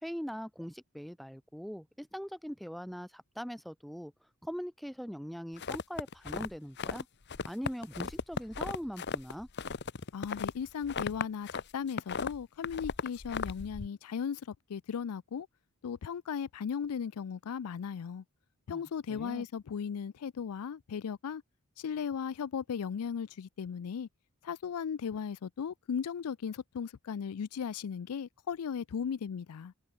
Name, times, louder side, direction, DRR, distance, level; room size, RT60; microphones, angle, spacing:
voice 1, 0.0-4.1 4.4-7.1 7.4-9.5 18.7-18.8 19.1-19.5, equal, ahead, 0.7 m, -41 dB
sound 1, 5.6-7.0 7.3-11.6 11.9-13.9, left 5 dB, 50° left, 0.9 m, -36 dB
voice 2, 10.1-15.5 15.8-18.2 18.7-21.4 21.8-24.1 24.4-29.7, left 7 dB, 90° left, 0.4 m, -36 dB
head